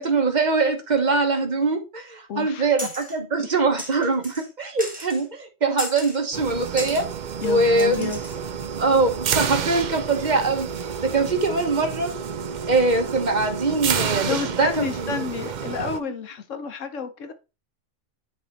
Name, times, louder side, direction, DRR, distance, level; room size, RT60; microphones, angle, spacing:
voice 1, 0.0-7.0 7.4-8.1 8.8-10.7 11.0-12.1 12.6-15.3, right 3 dB, 35° right, 1.3 m, -22 dB
voice 2, 2.3-2.9 3.4-3.5 7.4-8.2 14.3-17.3, left 5 dB, 70° left, 1.3 m, -30 dB
sound 1, 2.8-3.2 3.8-4.5 4.8-5.2 5.8-6.2 6.8-7.1 7.8-8.4, equal, 5° right, 2.2 m, -36 dB
sound 2, 6.3-16.0, right 7 dB, 55° right, 0.5 m, -30 dB
9.3 x 3.5 x 4.0 m
omnidirectional pair, 1.4 m